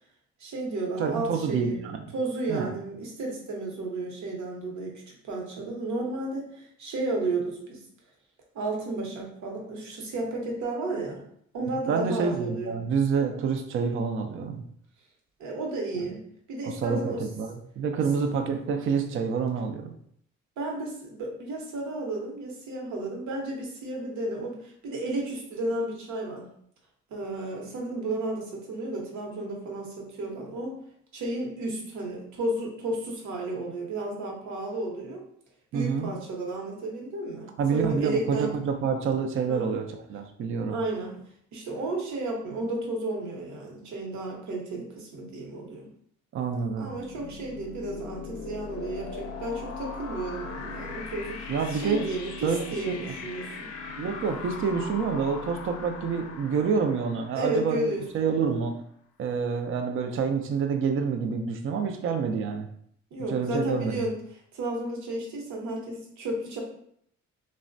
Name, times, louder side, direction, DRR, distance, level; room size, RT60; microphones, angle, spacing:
voice 1, 0.4-1.8 2.1-7.8 8.5-11.2 11.5-12.8 15.4-16.2 16.5-17.2 20.6-26.5 27.1-30.7 31.1-35.2 35.7-38.5 39.5-39.7 40.7-41.2 41.5-45.9 46.8-53.7 57.3-58.6 63.1-64.2 64.5-66.6, right 2 dB, 70° right, 0 dB, 0.9 m, -33 dB
voice 2, 1.0-2.0 2.5-2.7 11.6-14.6 16.6-19.9 35.7-36.1 37.6-40.8 46.3-46.9 51.5-52.1 52.4-53.1 54.0-58.8 59.2-62.7 63.2-63.9, right 5 dB, 45° right, 6 dB, 0.4 m, -28 dB
sound 1, 46.7-58.3, left 5 dB, 55° left, 0.5 m, -40 dB
3.1 x 2.1 x 2.5 m, 0.67 s
cardioid pair, 90°, 30 cm